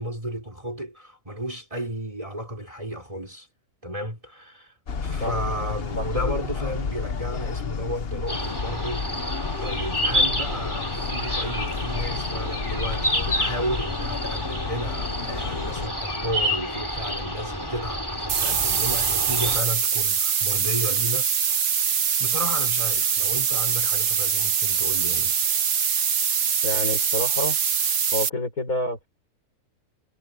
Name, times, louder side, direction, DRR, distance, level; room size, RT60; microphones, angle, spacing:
voice 1, 0.0-3.5 3.8-4.7 5.0-21.5 22.2-25.3, equal, 20° right, 4.4 m, -33 dB
sound 1, 4.9-15.9, left 5 dB, 45° left, 1.2 m, -31 dB
sound 2, 8.3-19.6, equal, 15° left, 4.3 m, -29 dB
sound 3, 18.3-28.3, right 7 dB, 55° right, 1.3 m, -23 dB
voice 2, 26.6-27.6 28.1-29.1, left 1 dB, 80° left, 6.3 m, -28 dB
omnidirectional pair, 1.5 m